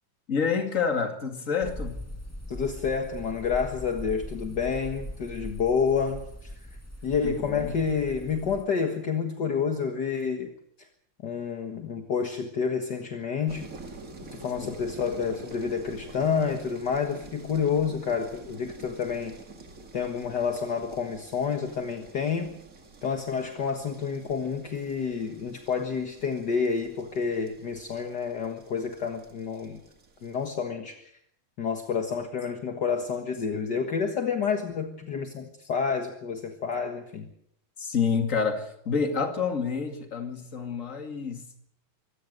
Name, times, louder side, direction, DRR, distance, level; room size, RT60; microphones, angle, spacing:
voice 1, 0.3-2.0 7.2-7.8 14.6-14.7 37.8-41.6, left 5 dB, 40° left, 5 dB, 2.6 m, -28 dB
sound 1, 1.6-8.6, left 1 dB, 10° left, 1.6 m, -40 dB
voice 2, 2.5-6.5 7.0-10.5 11.2-13.7 14.2-19.3 19.9-22.6 23.0-29.8 30.2-31.1 31.6-37.3, left 6 dB, 55° left, 4 dB, 2.1 m, -29 dB
sound 2, 13.5-30.5, right 3 dB, 40° right, 2.4 m, -48 dB
24.5 x 17.0 x 6.6 m, 0.72 s
omnidirectional pair, 2.3 m